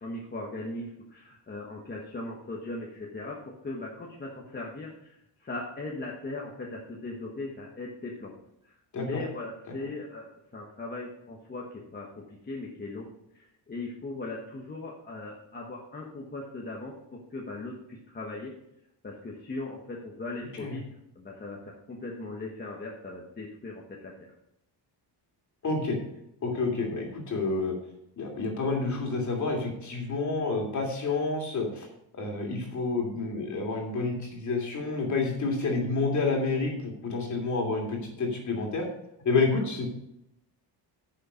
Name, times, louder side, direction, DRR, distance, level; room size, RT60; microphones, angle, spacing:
voice 1, 0.0-8.3 8.6-13.1 13.3-18.5 19.0-24.1, left 2 dB, 20° left, -2 dB, 1.3 m, -39 dB
voice 2, 25.6-26.0 26.4-27.7 28.2-31.9 32.1-38.9 39.2-39.9, left 3 dB, 40° left, 0 dB, 2.8 m, -29 dB
10.0 x 6.6 x 5.1 m, 0.79 s
cardioid pair, 175°, 44 cm